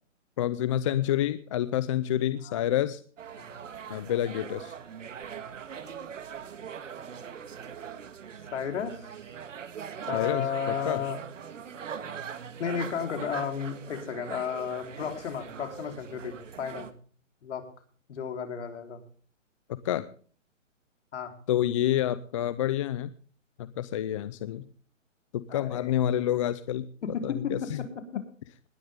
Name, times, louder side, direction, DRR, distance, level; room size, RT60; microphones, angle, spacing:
voice 1, 0.4-3.0 3.9-4.7 10.1-11.0 19.7-20.0 21.5-23.1 23.6-24.7 25.3-26.9 27.2-27.8, left 11 dB, 25° left, 15 dB, 0.6 m, -28 dB
sound 1, 3.2-16.9, right 7 dB, 70° right, 2.0 m, -41 dB
voice 2, 8.5-9.0 10.1-11.2 12.6-16.9 17.4-17.7 18.1-19.0 21.1-21.4 25.5-25.9 27.0-28.2, left 7 dB, 60° left, 6 dB, 4.1 m, -33 dB
20.0 x 11.5 x 3.6 m, 0.43 s
hypercardioid pair, 145°, 39 cm